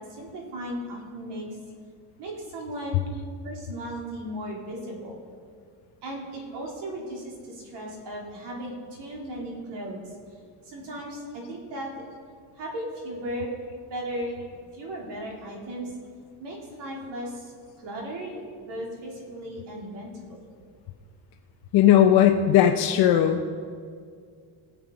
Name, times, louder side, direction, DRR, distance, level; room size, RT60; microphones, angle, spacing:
voice 1, 0.1-1.5 2.2-3.0 3.4-5.2 6.0-10.0 10.6-11.9 12.5-13.5 13.9-14.3 14.7-15.9 16.4-17.5 17.8-18.3 18.7-20.4, right 1 dB, 55° right, -1 dB, 3.1 m, -36 dB
voice 2, 21.7-23.4, left 10 dB, 50° left, 4 dB, 0.6 m, -18 dB
19.0 x 7.2 x 5.1 m, 2.1 s
cardioid pair, 165°, 50 cm